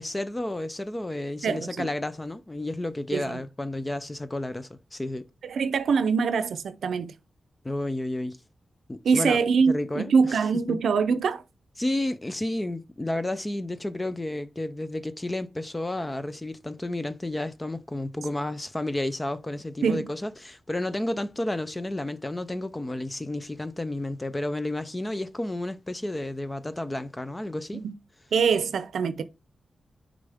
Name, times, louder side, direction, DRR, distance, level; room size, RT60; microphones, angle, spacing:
voice 1, 0.0-5.3 7.6-8.4 8.9-9.4 9.7-10.4 10.7-10.8 11.8-27.8, left 1 dB, 15° left, 0.5 m, -31 dB
voice 2, 1.4-1.9 3.1-3.4 5.4-7.1 9.0-11.4 19.8-20.1 27.7-27.9 28.3-29.2, right 5 dB, 85° right, 0.5 m, -24 dB
6.5 x 5.2 x 3.5 m
wide cardioid pair, 95°, 0 cm